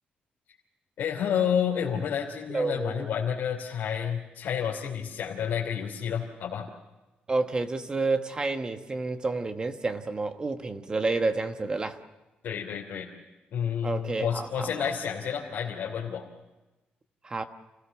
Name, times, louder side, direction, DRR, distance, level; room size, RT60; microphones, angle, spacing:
voice 1, 1.0-6.7 12.4-13.1 13.5-16.2, left 8 dB, 85° left, -3 dB, 2.9 m, -30 dB
voice 2, 2.5-3.0 7.3-12.0 13.8-14.7 17.2-17.4, right 3 dB, 25° right, 7 dB, 1.2 m, -29 dB
28.5 x 16.5 x 7.1 m, 1.1 s
cardioid pair, 140°, 3 cm